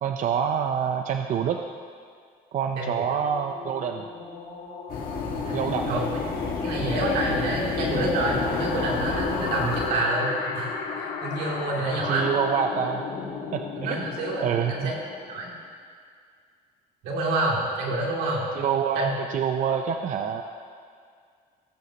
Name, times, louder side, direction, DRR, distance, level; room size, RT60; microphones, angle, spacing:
voice 1, 0.0-1.6 2.5-4.0 5.5-6.0 11.9-13.0 13.5-14.0 14.4-14.9 18.6-20.4, right 7 dB, 50° right, 5 dB, 0.5 m, -26 dB
sound 1, 3.2-15.6, left 5 dB, 80° left, 1.5 m, -35 dB
sound 2, 4.9-9.9, left 4 dB, 60° left, 1.7 m, -30 dB
voice 2, 6.6-12.3 13.7-14.9 15.3-15.5 17.0-18.5 18.9-19.1, right 2 dB, 85° right, -4 dB, 2.6 m, -28 dB
18.0 x 7.9 x 2.9 m, 2.1 s
cardioid pair, 110°, 17 cm